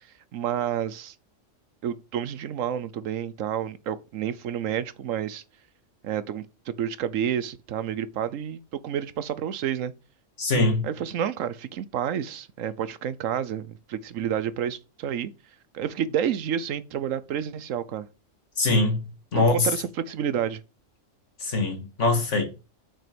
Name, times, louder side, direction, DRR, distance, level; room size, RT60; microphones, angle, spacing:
voice 1, 0.3-1.1 1.8-5.4 6.0-9.9 10.8-15.3 15.7-18.1 19.3-20.6, right 9 dB, 85° right, 1.1 m, -30 dB
voice 2, 10.4-10.9 18.6-19.0 19.3-19.7 21.4-22.4, left 2 dB, 65° left, 2.3 m, -22 dB
6.8 x 6.3 x 5.2 m
omnidirectional pair, 1.3 m